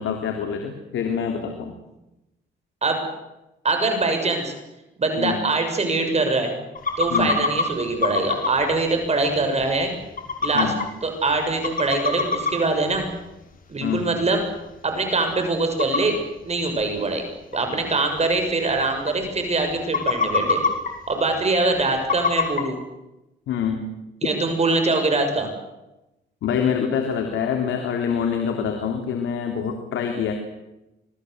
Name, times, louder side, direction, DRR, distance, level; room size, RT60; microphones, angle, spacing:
voice 1, 0.0-1.7 5.2-5.4 7.1-7.4 10.5-10.8 13.8-14.1 23.5-23.9 26.4-30.3, left 7 dB, 75° left, 3 dB, 3.5 m, -25 dB
voice 2, 3.6-4.5 5.0-6.5 7.0-9.9 10.4-10.7 11.0-13.1 13.7-14.4 14.8-16.1 16.4-17.2 17.5-20.6 21.1-22.8 24.2-25.5, right 3 dB, 35° right, 5 dB, 6.7 m, -23 dB
sound 1, 6.7-7.6 8.0-8.7 9.2-9.3 9.6-9.7 10.2-10.8 11.3-11.4 11.6-12.5 12.9-13.0 14.2-14.3 14.7-14.8 15.8-16.0 16.8-16.9 17.5-17.6 17.9-18.0 18.2-18.3 18.8-18.9 19.1-19.4 19.8-20.9 22.1-22.6, left 5 dB, 45° left, 6.1 m, -22 dB
26.5 x 20.0 x 8.1 m, 0.95 s
cardioid pair, 90°, 20 cm